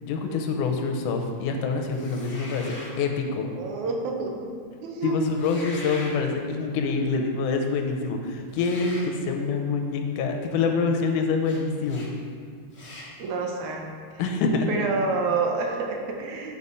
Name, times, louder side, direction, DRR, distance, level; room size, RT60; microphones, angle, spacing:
voice 1, 0.0-3.5 5.0-12.1 14.2-14.7, left 4 dB, 85° left, 4 dB, 2.2 m, -26 dB
sound 1, 1.9-3.0 5.3-6.1 8.5-9.1 11.4-11.6 11.9-12.1 12.7-13.1, left 1 dB, 65° left, 0.7 m, -41 dB
voice 2, 3.4-5.7 13.2-13.9 14.7-16.6, right 4 dB, 80° right, 2 dB, 2.1 m, -29 dB
6.8 x 4.9 x 5.5 m, 2.1 s
omnidirectional pair, 3.5 m